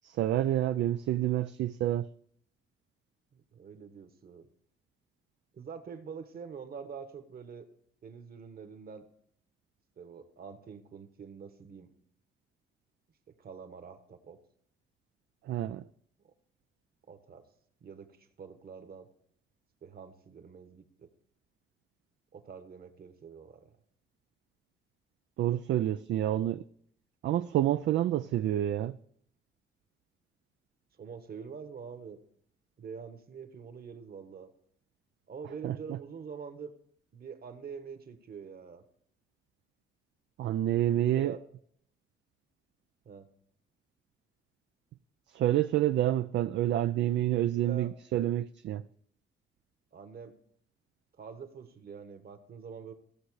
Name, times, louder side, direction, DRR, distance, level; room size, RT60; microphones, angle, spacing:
voice 1, 0.0-2.1 15.4-15.9 25.4-26.6 27.2-29.0 35.6-35.7 40.4-41.3 45.3-48.8, right 12 dB, 65° right, 0.4 m, -28 dB
voice 2, 3.3-4.5 5.5-7.7 8.0-9.1 10.0-11.9 13.3-14.4 16.2-16.3 17.1-17.4 17.8-19.1 19.8-21.1 22.3-23.7 31.0-32.2 32.8-34.5 35.3-36.7 37.1-38.8 40.9-41.4 43.0-43.3 47.3-47.9 49.9-50.3 51.1-52.9, right 6 dB, 50° right, 1.4 m, -45 dB
16.0 x 6.5 x 4.8 m
cardioid pair, 90°, 20 cm